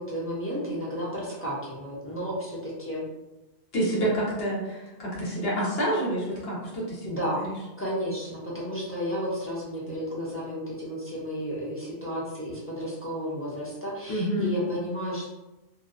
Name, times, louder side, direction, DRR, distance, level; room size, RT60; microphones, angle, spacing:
voice 1, 0.0-3.0 7.0-7.4 7.8-15.3, equal, 15° left, -7 dB, 0.5 m, -32 dB
voice 2, 3.7-7.4 14.1-14.5, right 1 dB, 70° left, -5 dB, 1.0 m, -28 dB
2.6 x 2.2 x 2.5 m, 1.0 s
omnidirectional pair, 1.1 m